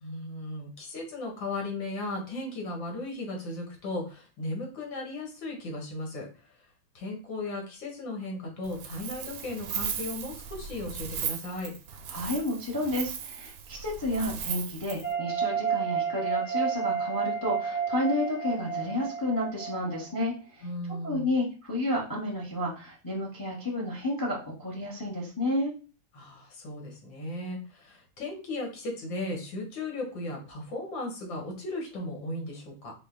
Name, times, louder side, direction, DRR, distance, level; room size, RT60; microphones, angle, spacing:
voice 1, 0.0-6.7 7.0-11.7 20.6-21.3 26.1-32.9, left 2 dB, 75° left, 1 dB, 2.0 m, -36 dB
Wind, 8.6-15.1, right 7 dB, 70° right, 0.8 m, -37 dB
voice 2, 12.1-20.6 21.0-25.7, left 1 dB, 25° left, -2 dB, 0.4 m, -31 dB
sound 1, 15.0-20.3, right 7 dB, 50° left, 1.1 m, -31 dB
4.9 x 2.2 x 3.7 m, 0.34 s
omnidirectional pair, 2.1 m